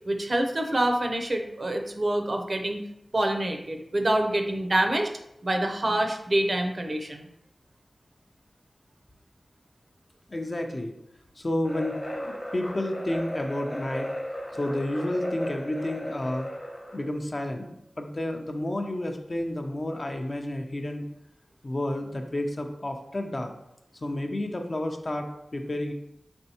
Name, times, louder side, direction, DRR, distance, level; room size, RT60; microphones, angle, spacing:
voice 1, 0.1-2.8 3.1-5.1 5.4-7.3, right 1 dB, 50° right, 4 dB, 0.5 m, -26 dB
voice 2, 10.3-10.9 11.4-14.1 14.5-16.5 16.9-21.1 21.6-23.5 24.0-25.9, left 1 dB, 45° left, 4 dB, 0.5 m, -31 dB
sound 1, 11.6-17.1, equal, 30° left, 0.9 m, -35 dB
4.3 x 3.4 x 2.8 m, 0.80 s
wide cardioid pair, 60°, 0 cm